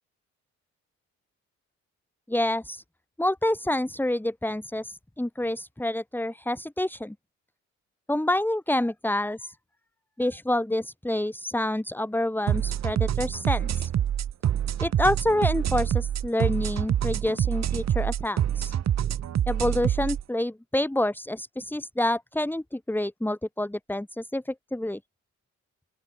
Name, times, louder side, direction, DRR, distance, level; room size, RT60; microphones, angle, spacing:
voice 1, 2.3-2.8 3.2-7.1 8.1-9.6 10.2-13.9 14.8-18.7 19.5-25.0, left 1 dB, 5° left, 4.5 m, -28 dB
sound 1, 12.5-20.2, right 10 dB, 60° right, 2.2 m, -26 dB
open air
cardioid pair, 90°, 30 cm